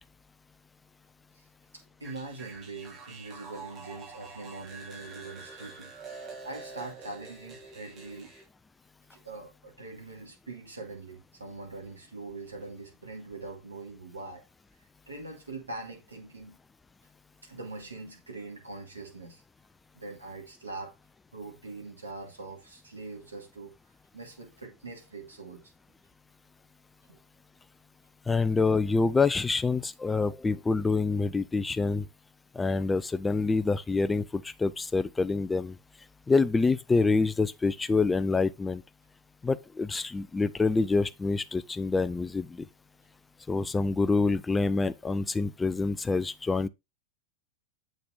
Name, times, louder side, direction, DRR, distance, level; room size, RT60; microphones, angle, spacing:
voice 1, 1.7-5.9 6.4-8.3 9.1-14.4 14.8-16.6 17.4-19.4 19.9-21.0 21.3-23.7 24.1-25.7 27.1-27.2, right 3 dB, 80° right, 2.3 m, -43 dB
sound 1, 2.0-8.4, right 4 dB, 25° right, 3.5 m, -46 dB
voice 2, 28.3-32.1 32.5-35.8 36.3-38.8 39.4-42.7 43.5-46.7, left 3 dB, 10° left, 0.5 m, -26 dB
7.7 x 6.4 x 3.6 m
figure-of-eight pair, 90°, 0 cm